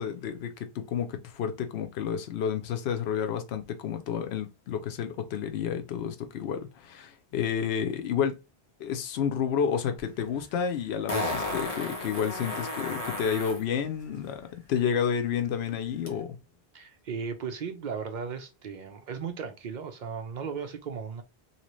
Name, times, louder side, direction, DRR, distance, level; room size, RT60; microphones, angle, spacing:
voice 1, 0.0-8.3 8.8-16.4, left 8 dB, 85° left, 0.8 m, -30 dB
Fart, 10.0-10.1 11.1-13.6 16.1-16.2, left 2 dB, 40° left, 0.9 m, -33 dB
voice 2, 16.7-21.2, right 6 dB, 55° right, 0.7 m, -36 dB
2.8 x 2.8 x 3.0 m
omnidirectional pair, 1.0 m